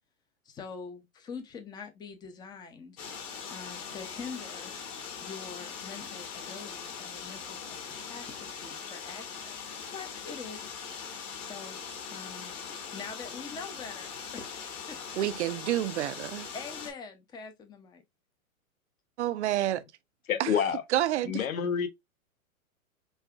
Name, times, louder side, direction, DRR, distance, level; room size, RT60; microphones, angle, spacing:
voice 1, 0.4-3.0 3.5-4.7 5.2-9.6 9.9-10.7 11.4-11.8 12.1-15.3 16.5-18.0, left 5 dB, 10° left, 0.5 m, -44 dB
sound 1, 3.0-16.9, left 6 dB, 35° left, 1.5 m, -41 dB
voice 2, 15.2-16.5 19.2-19.8 20.4-20.5 20.9-21.4, right 13 dB, 55° right, 0.5 m, -28 dB
voice 3, 20.3-20.8 21.2-21.9, left 7 dB, 75° left, 0.9 m, -28 dB
5.3 x 2.3 x 2.3 m
hypercardioid pair, 110°, 42 cm